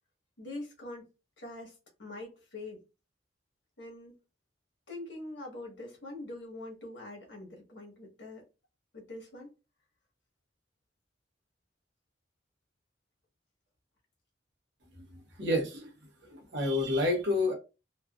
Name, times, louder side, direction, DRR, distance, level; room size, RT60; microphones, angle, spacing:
voice 1, 0.4-1.0 1.4-2.8 3.8-4.1 4.9-8.4 8.9-9.5, left 2 dB, 80° left, 1.1 m, -44 dB
voice 2, 15.4-15.9 16.3-17.5, left 2 dB, 70° right, 0.9 m, -28 dB
3.1 x 2.4 x 2.3 m
head